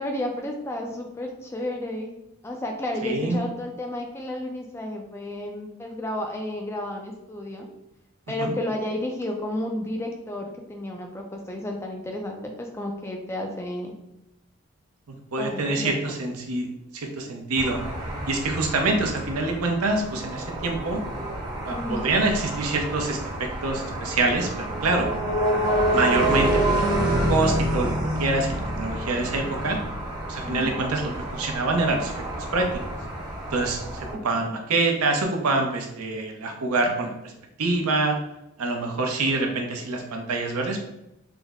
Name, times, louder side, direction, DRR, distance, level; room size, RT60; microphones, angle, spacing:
voice 1, 0.0-2.1 2.4-7.7 8.3-13.9 15.4-16.1 21.7-22.1 30.4-30.8 34.1-34.4, left 1 dB, 10° left, 2 dB, 0.3 m, -32 dB
voice 2, 3.0-3.4 8.4-8.5 15.1-16.7 16.9-17.8 18.3-21.0 21.6-25.1 25.9-27.9 28.2-29.8 30.3-32.7 33.5-37.3 37.6-38.2 38.6-40.8, right 2 dB, 85° right, 2 dB, 0.6 m, -26 dB
sound 1, 17.6-34.1, right 1 dB, 20° right, 0.7 m, -28 dB
3.4 x 2.0 x 3.4 m, 0.87 s
head